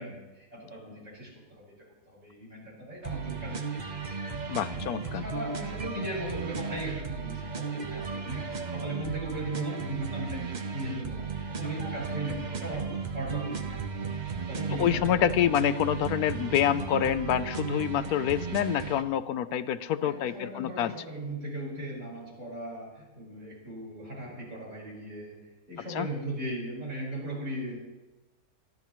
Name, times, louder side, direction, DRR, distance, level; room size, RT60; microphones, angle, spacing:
voice 1, 0.0-3.9 4.7-14.2 14.5-15.6 20.0-25.4 25.7-27.8, right 1 dB, 65° right, -4 dB, 5.2 m, -38 dB
sound 1, 3.0-19.0, right 5 dB, 35° right, 0.8 m, -35 dB
voice 2, 4.5-5.2 14.8-20.9 25.9-26.1, left 10 dB, 80° left, 14 dB, 1.1 m, -27 dB
26.5 x 10.5 x 3.1 m, 1.1 s
omnidirectional pair, 1.6 m